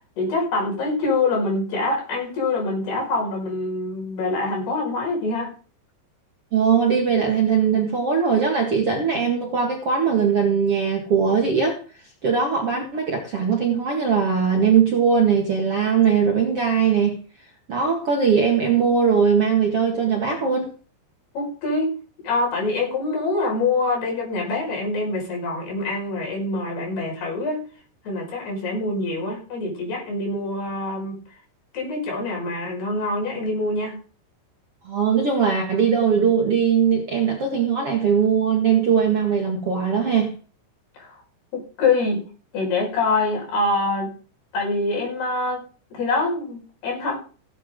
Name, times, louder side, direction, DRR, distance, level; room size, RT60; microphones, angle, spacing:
voice 1, 0.2-5.5 21.3-22.0 22.2-27.7 28.0-31.2 31.7-34.0 41.0-41.1 41.5-42.3 42.5-44.1 44.5-45.6 45.9-47.2, left 3 dB, 65° left, 7.6 m, -25 dB
voice 2, 6.5-11.8 12.2-17.2 17.7-20.7 34.9-40.3, right 6 dB, 45° right, 2.2 m, -20 dB
17.0 x 9.3 x 3.8 m
omnidirectional pair, 5.0 m